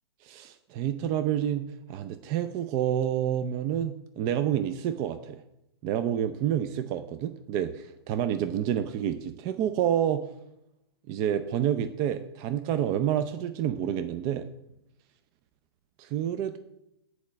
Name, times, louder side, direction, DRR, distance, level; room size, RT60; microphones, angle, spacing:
voice 1, 0.2-5.4 5.8-10.2 11.1-14.5 16.0-16.6, right 10 dB, 25° right, 10 dB, 0.4 m, -28 dB
8.2 x 4.6 x 6.1 m, 0.84 s
figure-of-eight pair, 110°, 14 cm